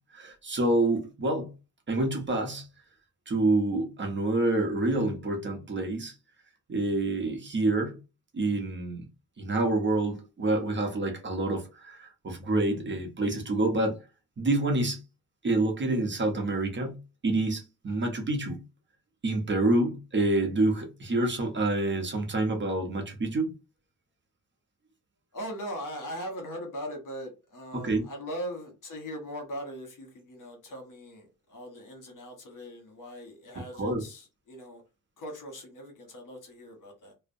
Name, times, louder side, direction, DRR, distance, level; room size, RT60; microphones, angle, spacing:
voice 1, 0.1-1.5 1.9-2.7 3.3-6.1 6.7-8.0 8.3-9.0 9.4-14.0 14.4-15.0 15.4-18.6 19.2-23.5 27.7-28.0 33.8-34.0, right 2 dB, 35° right, 0.7 m, -27 dB
voice 2, 25.3-34.8 35.2-37.1, equal, 65° left, 1.2 m, -40 dB
2.4 x 2.1 x 2.6 m
wide cardioid pair, 120°, 34 cm